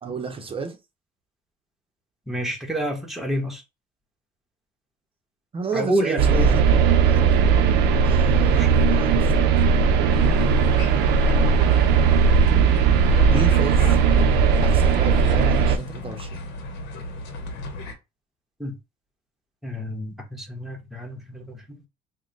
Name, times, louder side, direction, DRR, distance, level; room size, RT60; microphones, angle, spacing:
voice 1, 0.0-0.8 5.5-6.6 7.1-7.3 8.0-9.4 13.3-14.0 14.6-16.4, right 4 dB, 35° right, 0.7 m, -32 dB
voice 2, 2.3-3.6 5.7-6.6 8.5-8.7 18.6-18.8 19.6-21.8, right 1 dB, ahead, 1.1 m, -28 dB
sound 1, 6.2-15.8, right 5 dB, 85° right, 0.5 m, -18 dB
sound 2, 10.1-17.9, left 2 dB, 90° left, 0.9 m, -35 dB
3.0 x 2.2 x 3.9 m
cardioid pair, 110°, 17 cm